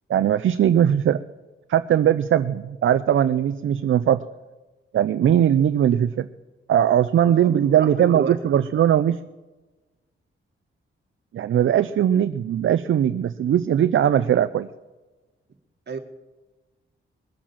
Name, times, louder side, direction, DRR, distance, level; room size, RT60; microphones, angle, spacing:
voice 1, 0.1-1.2 1.7-4.2 4.9-6.3 6.7-9.2 11.3-14.7, right 10 dB, 70° right, 12 dB, 0.5 m, -20 dB
voice 2, 7.3-8.6 15.9-16.0, right 5 dB, 55° right, 6 dB, 1.7 m, -30 dB
21.0 x 7.5 x 7.2 m, 1.2 s
cardioid pair, 95°, 21 cm